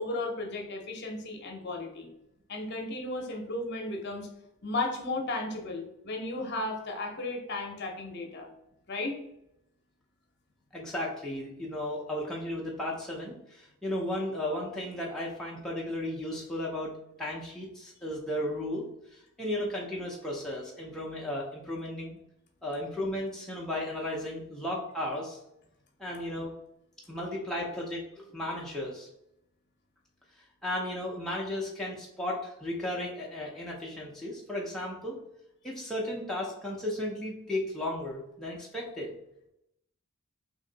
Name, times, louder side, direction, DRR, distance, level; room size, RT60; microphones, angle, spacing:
voice 1, 0.0-2.1 2.5-4.3 4.6-8.5 8.9-9.2, left 2 dB, 50° left, 2 dB, 0.7 m, -34 dB
voice 2, 10.7-18.8 19.1-22.2 22.6-25.4 26.0-26.5 27.1-29.1 30.6-35.2 35.6-39.2, left 1 dB, ahead, -5 dB, 0.5 m, -35 dB
3.1 x 2.6 x 3.8 m, 0.81 s
head